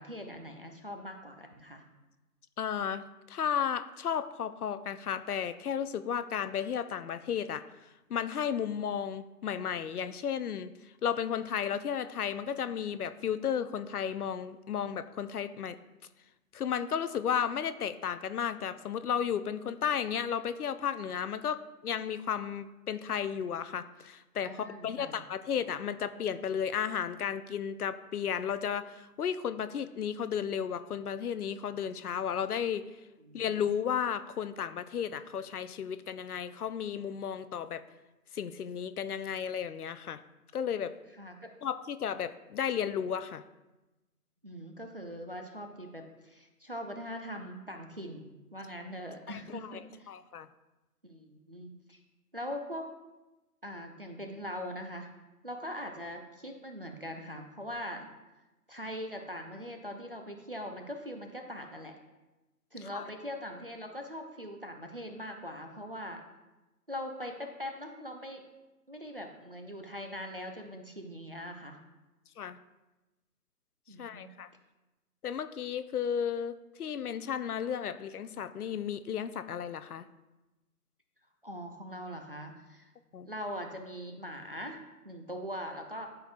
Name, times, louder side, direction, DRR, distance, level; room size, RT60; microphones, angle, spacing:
voice 1, 0.0-1.8 24.4-25.1 33.2-33.6 41.2-41.5 44.4-50.1 51.0-52.0 52.3-52.9 53.6-55.1 55.4-58.1 58.7-61.9 62.7-66.2 66.9-68.4 68.9-71.8 73.9-74.3 81.4-82.9 83.2-84.8 85.0-86.1, equal, 40° right, 3 dB, 0.4 m, -41 dB
voice 2, 2.6-7.6 8.1-10.7 11.0-15.8 16.5-32.8 33.3-37.8 38.3-40.2 40.5-40.9 41.6-43.4 49.3-49.8 50.1-50.5 62.9-63.1 72.4-72.6 74.0-74.5 75.2-80.0 83.1-83.3, left 8 dB, 70° left, 12 dB, 0.5 m, -33 dB
11.5 x 4.4 x 2.5 m, 1.1 s
figure-of-eight pair, 155°, 47 cm